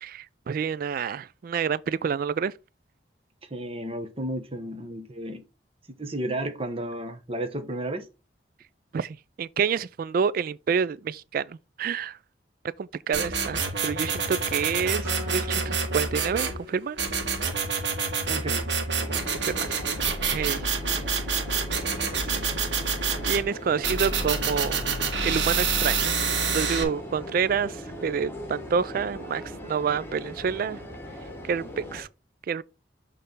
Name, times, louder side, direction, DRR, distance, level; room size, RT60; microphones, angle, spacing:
voice 1, 0.0-2.5 8.9-12.2 12.8-17.0 19.3-19.7 20.3-20.7 22.4-22.5 23.2-24.8 25.2-26.2 26.5-30.8 31.4-31.6 31.9-32.1 32.5-32.6, right 6 dB, 55° right, 0.3 m, -28 dB
voice 2, 3.5-5.4 6.0-8.1 18.3-18.8 21.9-22.5, right 1 dB, 35° right, 1.1 m, -33 dB
sound 1, 13.1-16.6 17.0-23.4 23.8-26.8, right 5 dB, 85° right, 1.7 m, -27 dB
Acoustic guitar, 15.0-18.5, left 5 dB, 15° right, 2.7 m, -44 dB
sound 2, 18.9-32.0, equal, 15° left, 1.6 m, -40 dB
6.6 x 3.3 x 5.3 m
head